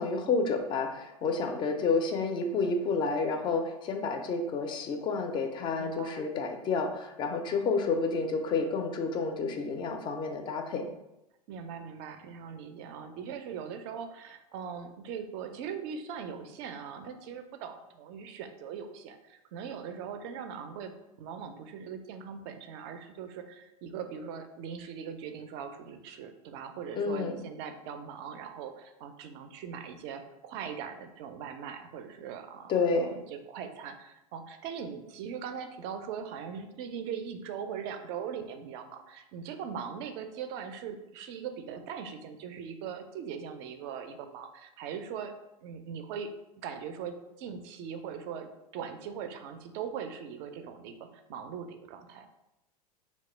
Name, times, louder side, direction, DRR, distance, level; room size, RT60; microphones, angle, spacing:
voice 1, 0.0-10.9 27.0-27.4 32.7-33.1, left 4 dB, 25° left, 5 dB, 0.4 m, -30 dB
voice 2, 5.8-6.3 11.5-45.3 45.6-46.3 46.6-52.3, right 7 dB, 45° right, 7 dB, 0.4 m, -40 dB
2.8 x 2.1 x 3.1 m, 0.90 s
figure-of-eight pair, 90°, 20 cm